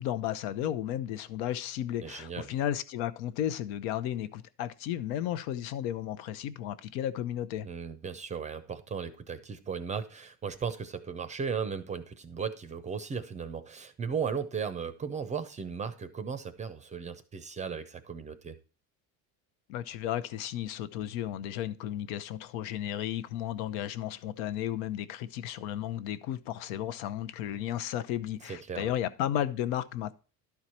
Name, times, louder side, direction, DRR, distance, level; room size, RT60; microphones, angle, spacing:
voice 1, 0.0-7.7 19.7-30.1, left 11 dB, 80° left, 0.8 m, -34 dB
voice 2, 2.0-2.5 7.6-18.6 28.4-28.9, right 6 dB, 20° right, 0.5 m, -36 dB
12.0 x 4.7 x 4.2 m
cardioid pair, 155°, 38 cm